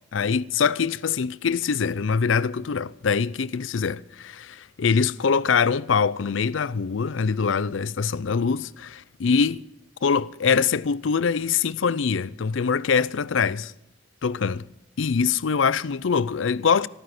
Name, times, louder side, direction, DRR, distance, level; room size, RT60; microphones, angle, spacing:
voice 1, 0.1-9.6 10.0-13.7 14.2-14.7 15.0-16.9, left 6 dB, 90° left, 0.5 m, -23 dB
14.5 x 13.5 x 6.0 m
head